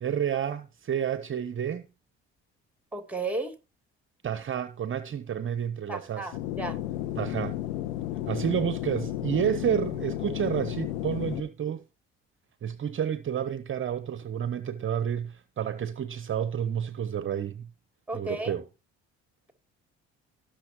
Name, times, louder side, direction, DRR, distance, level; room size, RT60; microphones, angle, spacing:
voice 1, 0.0-1.9 4.2-6.4 7.2-7.6 8.3-11.8 12.6-17.7 18.1-18.6, right 9 dB, 40° right, 0.8 m, -30 dB
voice 2, 2.9-3.5 5.9-6.8 18.1-18.5, right 2 dB, 5° right, 2.9 m, -33 dB
sound 1, 6.3-11.4, left 13 dB, 80° left, 1.1 m, -33 dB
18.0 x 6.5 x 3.0 m
hypercardioid pair, 55°, 31 cm